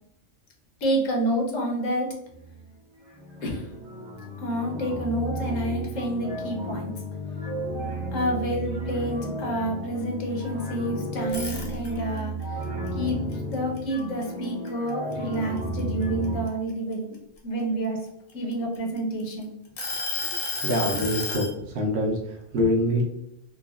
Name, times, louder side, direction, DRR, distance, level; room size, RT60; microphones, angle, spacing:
voice 1, 0.8-2.1 3.4-3.7 4.4-6.9 8.1-12.6 12.9-17.2 17.4-18.1 18.3-19.5, right 1 dB, 80° left, 0 dB, 1.1 m, -29 dB
sound 1, 2.3-2.8 3.0-16.5, right 1 dB, 35° right, 0.5 m, -33 dB
sound 2, 11.3-12.2 12.6-14.4 14.9-15.1 15.6-17.4 18.1-19.2 19.8-21.5, left 3 dB, 55° left, 0.8 m, -31 dB
voice 2, 20.6-23.0, left 1 dB, 60° right, -1 dB, 1.0 m, -25 dB
3.8 x 2.0 x 2.4 m, 0.79 s
omnidirectional pair, 1.3 m